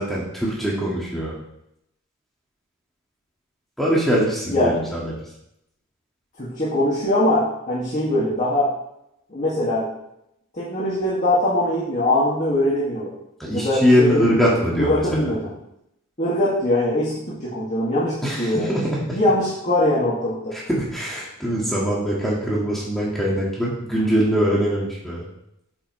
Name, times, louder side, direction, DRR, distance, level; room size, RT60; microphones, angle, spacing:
voice 1, 0.0-1.3 3.8-5.1 13.4-15.3 18.2-19.2 20.5-25.2, equal, ahead, -6 dB, 1.9 m, -22 dB
voice 2, 6.4-8.7 9.3-9.9 10.5-13.1 13.5-15.5 16.2-20.6, left 1 dB, 35° left, -7 dB, 2.1 m, -22 dB
8.5 x 7.8 x 3.2 m, 0.80 s
head